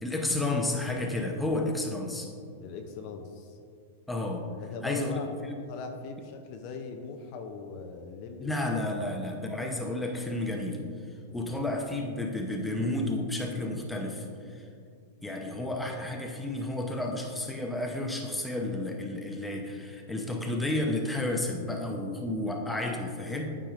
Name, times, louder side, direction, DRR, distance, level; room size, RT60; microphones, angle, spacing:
voice 1, 0.0-2.3 4.1-4.5 4.8-5.2 8.4-10.8 11.3-14.7 15.2-23.5, left 2 dB, 5° left, 1 dB, 0.8 m, -31 dB
voice 2, 2.6-3.6 4.6-5.3 5.7-9.1 11.3-11.6 15.6-15.7, left 5 dB, 50° left, 5 dB, 0.5 m, -41 dB
8.9 x 4.9 x 2.5 m, 2.3 s
hypercardioid pair, 120°, 0 cm